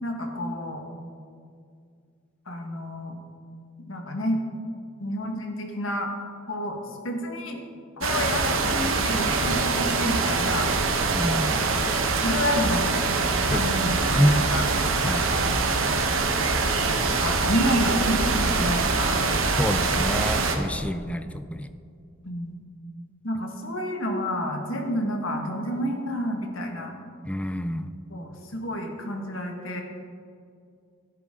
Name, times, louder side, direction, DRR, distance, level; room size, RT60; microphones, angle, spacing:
voice 1, 0.0-0.8 2.5-3.2 3.8-4.4 5.0-6.1 6.5-6.8 7.0-7.6 8.0-10.7 11.5-11.8 12.2-13.2 13.5-14.7 15.4-15.9 17.1-19.2 22.2-22.6 23.2-26.9 28.1-29.8, equal, 70° left, 3 dB, 1.6 m, -29 dB
sound 1, 8.0-20.6, right 3 dB, 75° right, 1.1 m, -24 dB
voice 2, 11.1-11.5 13.5-14.4 15.0-15.3 19.5-21.7 27.3-27.9, equal, 5° left, 11 dB, 0.4 m, -27 dB
12.0 x 11.0 x 3.8 m, 2.3 s
head